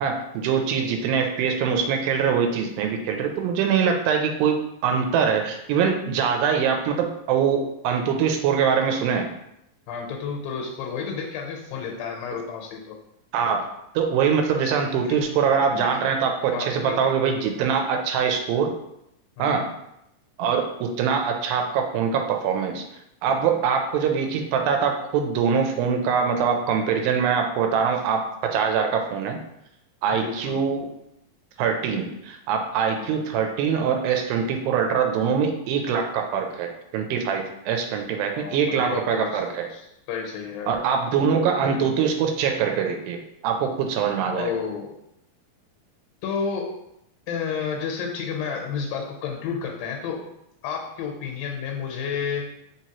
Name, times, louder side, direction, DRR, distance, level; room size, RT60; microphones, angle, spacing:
voice 1, 0.0-9.3 13.3-13.7 14.0-18.7 19.4-19.7 20.4-22.8 23.2-29.4 30.0-30.9 31.6-39.7 40.7-44.5, right 6 dB, 90° right, 3 dB, 2.3 m, -23 dB
voice 2, 9.9-13.0 15.1-15.2 15.7-15.9 16.5-17.1 19.4-19.7 23.3-23.6 30.2-30.6 32.9-33.1 38.4-39.4 39.7-40.8 44.3-45.0 46.2-46.8 47.3-50.3 50.6-52.5, left 6 dB, 80° left, 1 dB, 2.2 m, -31 dB
5.1 x 3.0 x 2.8 m, 0.81 s
omnidirectional pair, 4.1 m